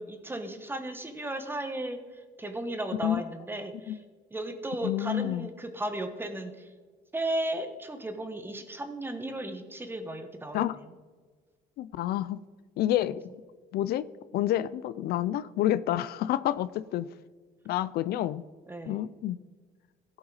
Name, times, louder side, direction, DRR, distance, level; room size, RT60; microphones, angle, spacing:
voice 1, 0.0-4.0 4.3-6.7 7.1-10.6 18.7-19.1, right 1 dB, 10° right, 1.2 m, -35 dB
voice 2, 4.8-5.5 10.5-10.8 11.8-12.4 12.8-13.2 13.7-14.1 14.3-17.1 17.7-18.4 18.9-19.4, left 13 dB, 70° left, 0.4 m, -28 dB
16.0 x 5.8 x 4.0 m
cardioid pair, 110°, 17 cm